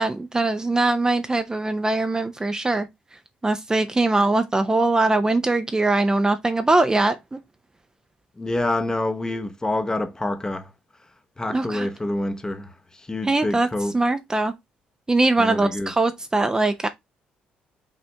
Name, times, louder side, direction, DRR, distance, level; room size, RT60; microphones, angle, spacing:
voice 1, 0.0-2.9 3.4-7.4 11.5-11.9 13.2-13.7 13.9-14.5 15.1-16.9, right 2 dB, 20° right, 0.5 m, -21 dB
voice 2, 8.4-10.7 11.4-14.0 15.4-15.9, left 1 dB, 20° left, 0.8 m, -27 dB
5.4 x 2.6 x 3.3 m
supercardioid pair, 65°, 4 cm